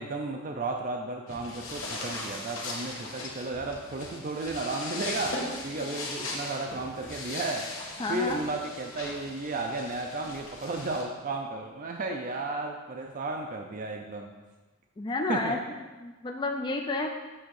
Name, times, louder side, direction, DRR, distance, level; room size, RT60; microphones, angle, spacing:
voice 1, 0.0-7.7 8.1-14.3 15.3-15.6, right 2 dB, 40° right, 2 dB, 0.5 m, -34 dB
sound 1, 1.3-11.0, left 2 dB, 85° left, 1.5 m, -38 dB
voice 2, 8.0-8.4 15.0-15.6 16.0-17.1, left 2 dB, 25° left, 2 dB, 0.4 m, -30 dB
7.6 x 3.6 x 6.4 m, 1.2 s
head